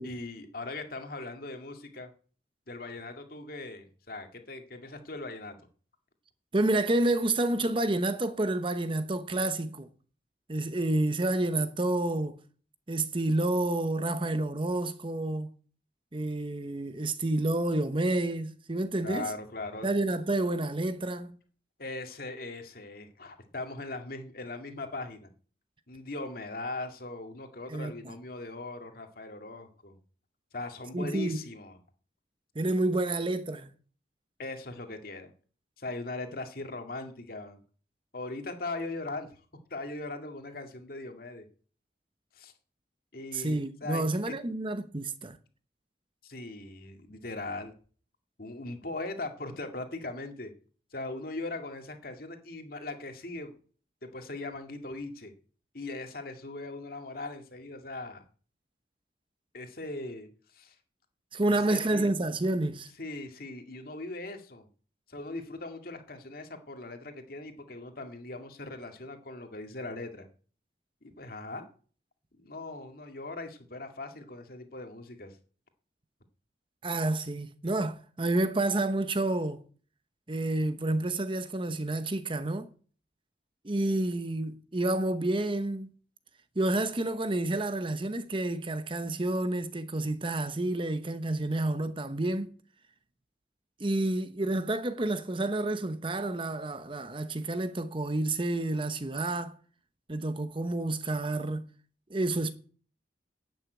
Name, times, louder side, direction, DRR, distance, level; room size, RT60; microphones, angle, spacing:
voice 1, 0.0-2.1 2.7-5.6 19.0-19.9 21.8-25.3 25.9-30.0 30.5-31.8 34.4-35.3 35.8-37.6 38.1-39.3 39.7-41.5 42.4-42.5 43.1-44.3 46.2-47.7 48.4-50.5 50.9-53.5 54.0-55.3 55.7-58.2 59.5-60.7 61.5-62.2 63.0-64.7 65.1-70.3 71.0-71.7 72.4-75.4, left 2 dB, 55° left, 2.2 m, -40 dB
voice 2, 6.5-9.9 10.5-12.4 12.9-15.5 16.1-19.3 19.8-21.3 27.7-28.1 30.9-31.4 32.5-33.7 43.3-45.4 61.3-62.9 76.8-79.6 80.3-82.7 83.6-85.9 86.6-92.5 93.8-99.6 100.1-101.6 102.1-102.5, right 2 dB, 30° right, 0.9 m, -29 dB
11.0 x 9.2 x 8.3 m
head